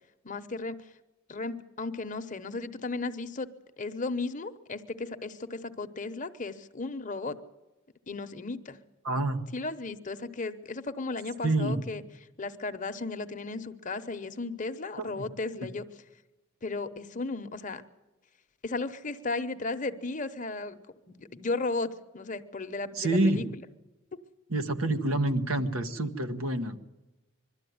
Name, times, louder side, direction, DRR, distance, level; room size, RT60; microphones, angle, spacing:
voice 1, 0.2-0.9 1.3-3.5 3.8-7.4 8.1-8.8 9.5-12.0 12.4-15.8 16.6-17.8 18.6-20.8 21.2-23.6, left 3 dB, 35° left, 9 dB, 0.9 m, -35 dB
voice 2, 9.0-9.4 11.4-11.8 15.0-15.3 15.6-15.7 22.9-23.4 24.5-26.8, right 2 dB, 75° right, 8 dB, 1.3 m, -27 dB
22.5 x 13.0 x 9.4 m, 1.1 s
head